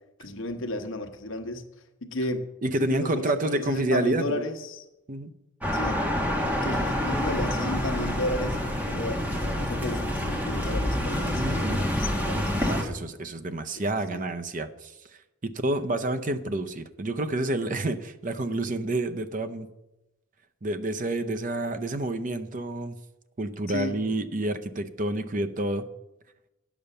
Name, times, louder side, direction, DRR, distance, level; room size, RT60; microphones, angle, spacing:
voice 1, 0.2-1.6 2.0-2.4 2.8-4.8 5.7-6.1 6.5-8.6 8.8-12.7 13.8-14.3 23.7-24.0, left 1 dB, 70° left, 7 dB, 1.0 m, -33 dB
voice 2, 2.6-4.3 5.1-5.3 11.3-11.9 12.7-14.9 15.4-19.7 20.6-23.0 23.4-25.9, right 1 dB, 40° right, 10 dB, 0.6 m, -29 dB
sound 1, 5.6-12.8, equal, 10° right, 1.3 m, -27 dB
10.0 x 7.0 x 6.6 m, 0.96 s
head